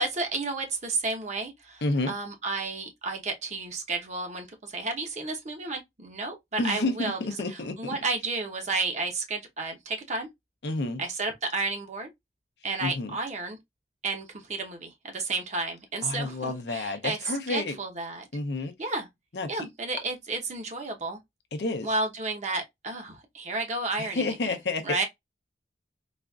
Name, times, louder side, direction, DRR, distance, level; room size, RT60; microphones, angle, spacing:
voice 1, 0.0-7.2 7.5-10.3 11.0-12.1 12.6-13.6 14.0-18.3 18.8-19.1 19.5-21.2 21.8-24.5 24.8-25.0, right 3 dB, 40° right, 0.9 m, -32 dB
voice 2, 1.8-2.1 6.6-7.9 10.6-11.0 12.8-13.2 16.0-17.8 18.3-18.7 19.3-19.7 21.5-21.9 24.0-25.0, left 2 dB, 65° left, 0.6 m, -30 dB
4.0 x 2.5 x 2.3 m
head